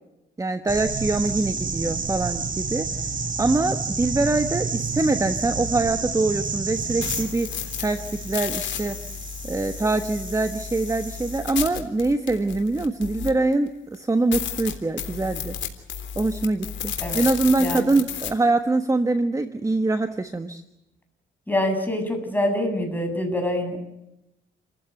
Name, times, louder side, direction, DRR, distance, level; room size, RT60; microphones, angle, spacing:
voice 1, 0.4-3.1 3.4-9.0 9.4-15.5 16.1-20.6, right 2 dB, 15° right, 9 dB, 1.4 m, -24 dB
sound 1, 0.7-11.4, right 4 dB, 40° right, 4.5 m, -30 dB
sound 2, 6.8-13.5 13.9-14.0 14.3-18.3, left 8 dB, 70° left, 3.6 m, -32 dB
voice 2, 17.6-17.9 21.5-23.8, left 1 dB, 10° left, 4 dB, 7.6 m, -25 dB
29.5 x 15.5 x 8.1 m, 0.89 s
cardioid pair, 90°, 20 cm